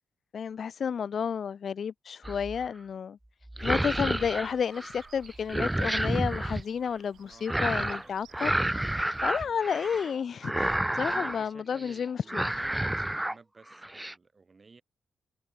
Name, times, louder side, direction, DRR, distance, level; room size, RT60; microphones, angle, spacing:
voice 1, 0.3-3.2 3.6-8.9 9.2-12.6, left 7 dB, 60° left, 0.4 m, -31 dB
voice 2, 0.9-1.3 7.3-8.2 9.3-9.6 11.0-14.8, right 4 dB, 40° right, 3.3 m, -53 dB
sound 1, 2.2-2.7 3.5-5.1 5.3-6.6 7.5-8.1 8.3-10.1 10.4-11.4 11.8-12.0 12.3-13.4 13.7-14.1, right 1 dB, 10° right, 0.6 m, -30 dB
sound 2, 3.6-9.2, right 9 dB, 70° right, 2.8 m, -57 dB
supercardioid pair, 50°, 0 cm